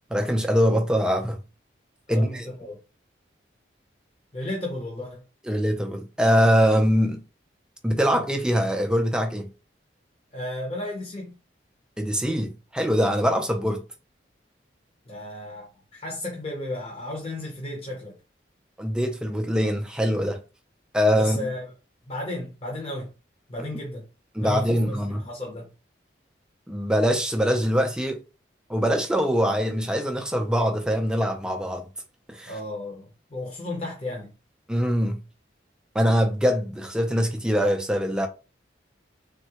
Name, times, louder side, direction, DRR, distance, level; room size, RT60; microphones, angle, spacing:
voice 1, 0.1-1.4 2.1-2.5 5.5-7.2 7.8-9.5 12.0-13.8 18.8-20.4 20.9-21.5 24.3-25.2 26.7-28.2 28.7-31.9 32.3-32.5 34.7-35.2 35.9-38.3, equal, 5° right, 0.3 m, -23 dB
voice 2, 2.1-2.8 4.3-5.2 10.3-11.3 15.1-18.2 21.1-21.7 22.1-23.1 23.5-24.0 24.4-25.7 32.5-34.3, left 1 dB, 30° left, 0.7 m, -34 dB
3.5 x 2.1 x 2.8 m
head